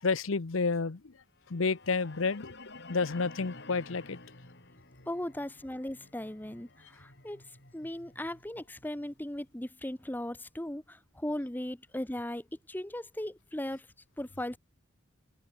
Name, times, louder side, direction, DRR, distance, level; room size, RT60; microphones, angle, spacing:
voice 1, 0.0-1.1 1.5-2.5 2.9-4.2, left 4 dB, 75° left, 0.8 m, -30 dB
sound 1, 1.4-9.5, left 2 dB, 55° left, 6.9 m, -52 dB
voice 2, 5.1-7.4 7.7-13.9 14.2-14.6, left 1 dB, 10° left, 0.8 m, -38 dB
head